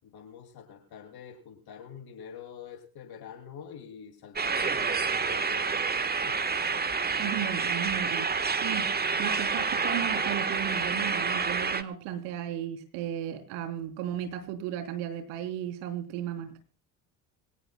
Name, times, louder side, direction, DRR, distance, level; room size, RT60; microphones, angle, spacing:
voice 1, 0.0-6.4 8.8-9.2, left 8 dB, 55° left, 4 dB, 7.4 m, -47 dB
sound 1, 4.4-11.8, right 5 dB, 20° right, 1.5 m, -28 dB
voice 2, 7.2-8.3 8.6-8.9 9.2-16.6, right 10 dB, 70° right, 7 dB, 3.8 m, -35 dB
26.0 x 17.0 x 2.3 m, 0.39 s
hypercardioid pair, 65°, 46 cm